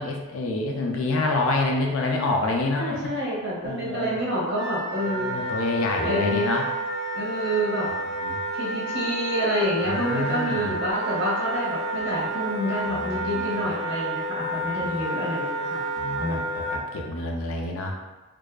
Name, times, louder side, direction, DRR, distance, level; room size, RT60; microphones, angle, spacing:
voice 1, 0.0-3.1 3.7-4.2 5.1-6.7 8.2-8.4 9.8-10.8 12.9-13.6 14.8-15.1 16.0-17.9, left 2 dB, 70° left, 1 dB, 0.4 m, -27 dB
voice 2, 2.8-5.5 6.0-6.5 7.1-7.9 8.5-15.8 16.2-16.5, equal, 50° right, -6 dB, 0.8 m, -28 dB
Wind instrument woodwind instrument, 4.5-16.8, right 1 dB, 15° right, 0.4 m, -30 dB
2.5 x 2.2 x 2.3 m, 1.1 s
head